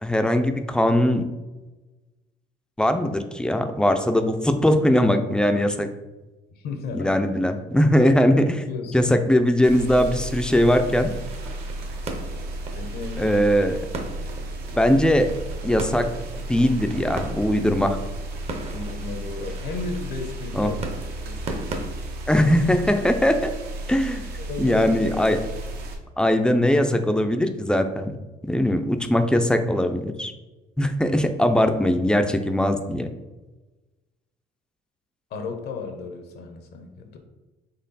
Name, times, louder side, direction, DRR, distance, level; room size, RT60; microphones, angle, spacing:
voice 1, 0.0-1.2 2.8-5.9 6.9-8.6 8.9-11.1 13.2-13.8 14.8-15.3 15.6-16.1 16.5-18.0 20.5-20.7 22.3-23.4 23.9-24.3 24.6-25.4 26.2-28.1 28.5-30.3 30.8-33.1, left 1 dB, 5° left, 7 dB, 0.4 m, -20 dB
voice 2, 6.5-7.1 8.6-9.1 12.7-13.4 18.7-21.6 24.4-25.0 35.3-37.2, left 4 dB, 70° left, 5 dB, 0.8 m, -34 dB
sound 1, 9.6-26.0, right 1 dB, 70° right, 0.8 m, -34 dB
sound 2, 11.1-21.8, right 2 dB, 40° right, 0.7 m, -39 dB
4.3 x 3.1 x 4.0 m, 1.1 s
cardioid pair, 110°, 17 cm